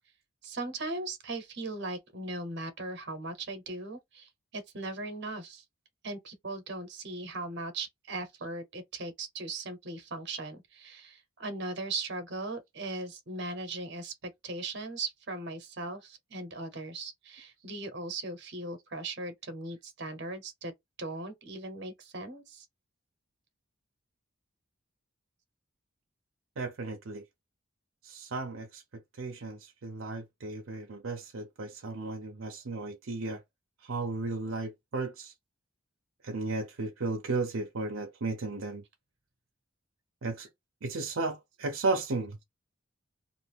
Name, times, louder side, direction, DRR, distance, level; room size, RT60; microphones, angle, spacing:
voice 1, 0.4-5.6 6.0-20.7 21.0-22.7, right 2 dB, 55° right, 0.9 m, -38 dB
voice 2, 26.6-27.2 28.0-28.8 29.2-33.4 33.8-35.3 36.2-38.8 40.2-40.5 40.8-42.4, right 3 dB, 75° right, 0.6 m, -34 dB
2.6 x 2.5 x 3.4 m
head